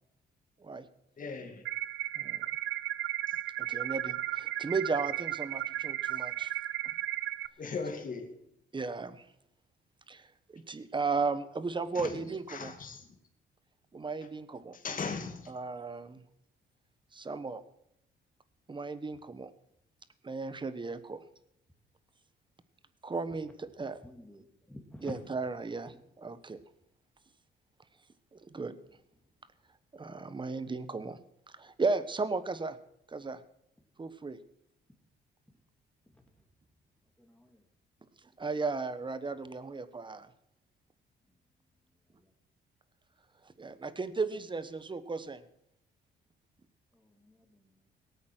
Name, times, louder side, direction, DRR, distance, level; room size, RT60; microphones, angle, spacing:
voice 1, 1.2-1.6 7.6-8.3 11.9-12.1 12.5-13.1 14.7-15.5, left 4 dB, 45° left, 4 dB, 2.2 m, -38 dB
sound 1, 1.6-7.5, right 14 dB, 80° right, 0.5 m, -35 dB
voice 2, 3.7-6.5 8.7-9.2 10.1-10.3 10.5-12.7 13.9-14.8 15.5-16.2 17.1-17.6 18.7-19.5 20.2-21.2 23.0-24.0 25.0-26.6 28.3-28.7 29.9-31.2 31.5-32.8 33.1-33.4 34.0-34.4 38.4-40.3 43.6-45.4, right 4 dB, 25° right, 13 dB, 1.1 m, -35 dB
voice 3, 24.0-25.2 36.1-36.2 37.2-37.6 42.2-42.3 46.9-47.9, left 1 dB, 5° left, 2 dB, 2.7 m, -50 dB
18.0 x 8.5 x 6.2 m, 0.77 s
cardioid pair, 90°, 20 cm